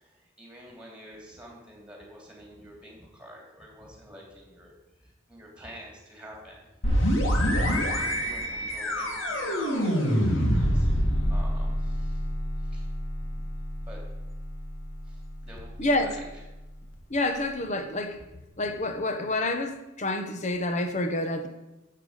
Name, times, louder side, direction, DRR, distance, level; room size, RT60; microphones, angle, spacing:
voice 1, 0.0-4.7 5.0-6.7 7.0-7.3 7.5-11.0 11.3-12.2 12.6-12.9 13.8-14.0 15.0-16.4 18.1-18.2, equal, 5° right, -2 dB, 3.0 m, -48 dB
sound 1, 6.8-16.4, equal, 75° left, 2.2 m, -27 dB
voice 2, 15.8-16.1 17.1-18.2 18.6-21.5, left 2 dB, 35° left, 7 dB, 1.0 m, -28 dB
12.0 x 7.8 x 5.0 m, 1.0 s
head